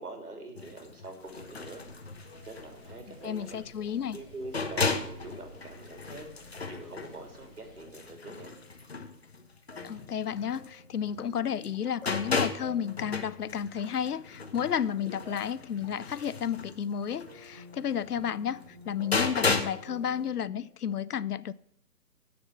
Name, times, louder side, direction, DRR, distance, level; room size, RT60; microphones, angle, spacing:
voice 1, 0.0-1.8 2.5-3.6 4.1-6.3 6.7-8.6, right 2 dB, 70° right, 3.4 m, -44 dB
sound 1, 0.6-11.3 11.6-19.9 20.2-20.3, left 4 dB, 40° left, 1.1 m, -35 dB
sound 2, 1.1-7.8, equal, 5° left, 1.8 m, -54 dB
sound 3, 2.9-8.2 8.5-8.8 9.7-20.7, left 2 dB, 25° right, 2.2 m, -55 dB
voice 2, 3.2-4.2 9.8-21.5, left 8 dB, 70° left, 0.6 m, -32 dB
9.0 x 6.8 x 7.1 m
hypercardioid pair, 175°, 47 cm